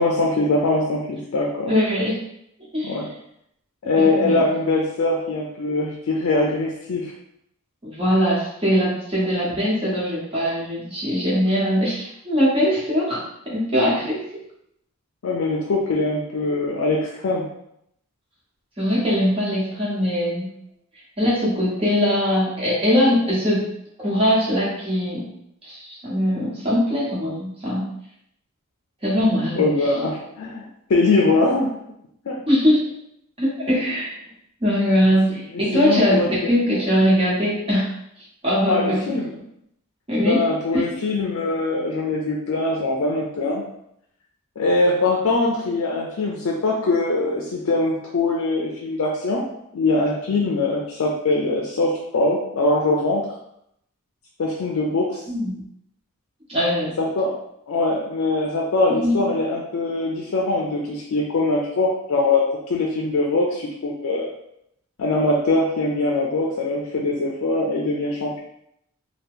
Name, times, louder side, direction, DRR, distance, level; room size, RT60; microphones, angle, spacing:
voice 1, 0.0-1.7 2.8-3.1 3.8-7.1 15.2-17.5 29.2-29.3 29.6-30.6 30.9-31.7 32.2-32.4 35.3-36.6 38.7-39.3 40.2-43.6 44.6-49.4 49.7-53.3 54.4-55.2 57.0-57.4 57.7-64.3 65.0-68.4, left 2 dB, 65° left, -2 dB, 0.4 m, -22 dB
voice 2, 1.7-2.2 2.7-2.9 3.9-4.4 7.8-14.2 18.8-20.5 21.2-23.6 24.0-25.3 25.6-27.9 29.0-29.6 32.5-32.8 33.4-34.1 34.6-37.9 38.4-39.1 40.1-40.4 40.7-40.8 55.3-55.6 56.5-56.9 59.0-59.1, equal, 25° right, -7 dB, 1.1 m, -21 dB
2.8 x 2.2 x 3.6 m, 0.75 s
head